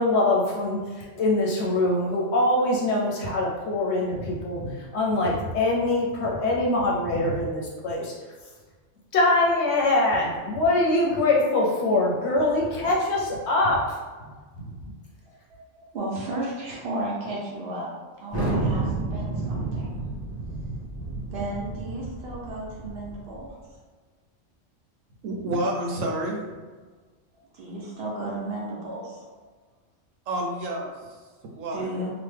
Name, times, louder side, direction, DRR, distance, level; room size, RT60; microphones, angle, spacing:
voice 1, 0.0-8.1 9.1-14.0 14.6-14.7, left 2 dB, 65° left, -3 dB, 0.8 m, -23 dB
voice 2, 15.5-17.9 18.2-19.9 21.3-23.6 27.5-29.3 31.5-32.1, right 1 dB, 55° right, -4 dB, 1.0 m, -34 dB
Thunder, 18.3-23.5, right 2 dB, 15° left, 0.6 m, -30 dB
voice 3, 25.2-26.6 30.3-30.9 31.6-32.0, right 1 dB, 80° right, 0 dB, 1.0 m, -29 dB
2.9 x 2.1 x 3.3 m, 1.4 s
omnidirectional pair, 1.3 m